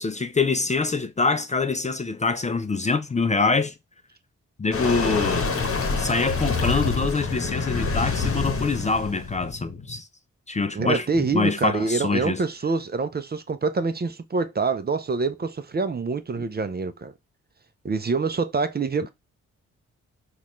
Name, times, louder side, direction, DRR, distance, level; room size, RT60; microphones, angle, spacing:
voice 1, 0.0-3.7 4.6-5.5 6.0-10.1 10.5-11.0 11.3-12.4, left 4 dB, 25° left, 0.5 m, -25 dB
sound 1, 4.7-10.0, left 4 dB, 45° left, 1.1 m, -27 dB
voice 2, 10.7-17.1 17.8-19.1, right 4 dB, 30° right, 0.6 m, -26 dB
4.1 x 2.5 x 3.1 m
supercardioid pair, 55°, 30 cm